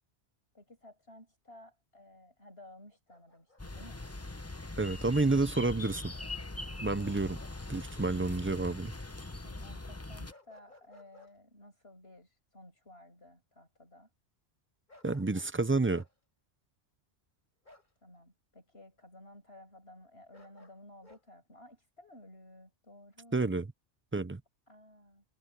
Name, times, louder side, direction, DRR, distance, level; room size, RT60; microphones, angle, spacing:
voice 1, 0.5-4.1 9.4-14.1 18.0-23.5 24.7-25.2, left 1 dB, 60° left, 7.5 m, -55 dB
Bark, 3.1-4.2 7.0-7.6 7.9-8.1 10.3-11.3 14.9-15.6 15.9-16.1 17.6-17.9 20.3-21.2, left 2 dB, 45° left, 6.2 m, -59 dB
sound 1, 3.6-10.3, left 2 dB, 15° left, 0.8 m, -42 dB
voice 2, 4.8-6.1 6.8-7.4 7.7-8.9 15.0-16.0 23.3-23.7 24.1-24.4, right 3 dB, 20° right, 0.3 m, -29 dB
omnidirectional pair, 1.2 m